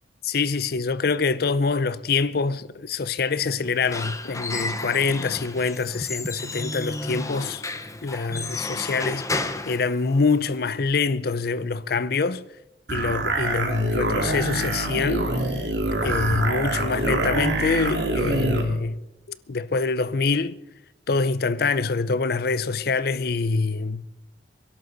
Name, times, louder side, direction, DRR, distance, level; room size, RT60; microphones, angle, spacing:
voice 1, 0.3-7.6 8.0-12.4 12.9-15.3 15.5-15.6 16.0-19.0 19.3-20.6 21.1-24.0, left 4 dB, 60° left, 0.6 m, -25 dB
Squeak / Wood, 3.6-10.6, left 2 dB, 20° left, 0.9 m, -32 dB
sound 1, 12.9-18.7, right 2 dB, 80° right, 2.7 m, -25 dB
28.0 x 12.0 x 4.0 m
head